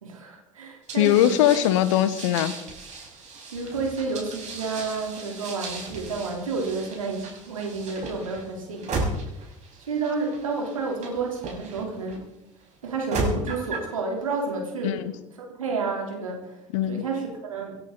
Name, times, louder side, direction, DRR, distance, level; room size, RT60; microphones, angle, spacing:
voice 1, 0.0-1.5 3.5-9.1 9.4-9.5 9.8-12.3 12.8-15.0 15.3-16.6 16.9-17.8, right 4 dB, 80° right, 0 dB, 3.6 m, -30 dB
sound 1, 0.9-12.2 12.8-13.9, right 3 dB, 45° right, 6.0 m, -35 dB
voice 2, 1.0-2.6 14.8-15.1 16.7-17.0, left 12 dB, 70° left, 15 dB, 1.1 m, -21 dB
26.0 x 10.5 x 4.0 m, 0.90 s
figure-of-eight pair, 60°, 17 cm